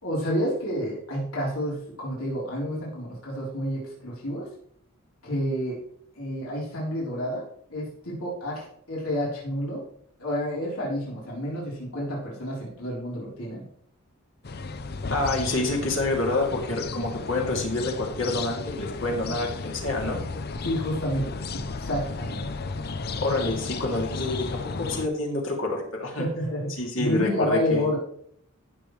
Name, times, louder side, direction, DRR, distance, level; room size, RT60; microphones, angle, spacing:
voice 1, 0.0-4.5 5.2-5.8 6.2-7.4 7.7-9.8 10.2-13.6 20.6-22.5 26.2-28.0, equal, 80° left, -5 dB, 4.0 m, -29 dB
sound 1, 14.4-25.1, left 3 dB, 45° left, 0.6 m, -34 dB
voice 2, 15.1-20.2 23.2-26.3 26.7-27.9, left 2 dB, 65° left, -1 dB, 2.8 m, -28 dB
15.5 x 7.2 x 3.3 m, 0.66 s
head